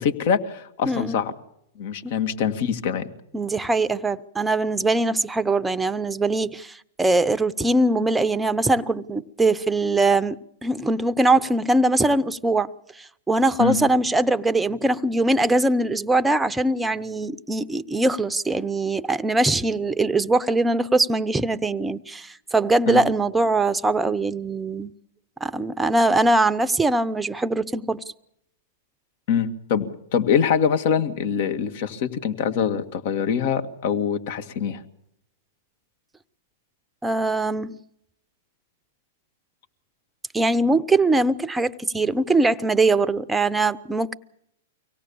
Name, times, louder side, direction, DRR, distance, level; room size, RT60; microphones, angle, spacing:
voice 1, 0.0-1.3 1.8-3.1 13.6-13.8 22.9-23.0 29.3-29.9 30.1-34.8, left 7 dB, 55° left, 1.8 m, -24 dB
voice 2, 0.9-1.2 2.0-2.1 3.3-12.7 13.0-24.9 25.4-28.0 37.0-37.8 40.3-44.1, right 2 dB, 10° right, 0.8 m, -22 dB
24.5 x 17.5 x 7.1 m
hypercardioid pair, 115°, 0 cm